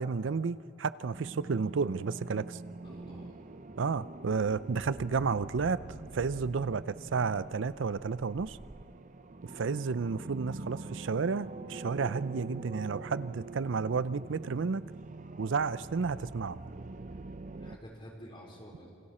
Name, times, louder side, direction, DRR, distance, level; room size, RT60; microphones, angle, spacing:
voice 1, 0.0-2.6 3.8-5.8 6.1-8.6 9.5-14.9 15.4-16.6, right 5 dB, 85° right, 17 dB, 0.5 m, -31 dB
sound 1, 1.1-17.8, right 2 dB, 40° right, 0.6 m, -45 dB
voice 2, 2.8-3.5 17.6-18.9, equal, 30° left, -1 dB, 4.1 m, -49 dB
28.0 x 26.5 x 4.3 m, 2.5 s
head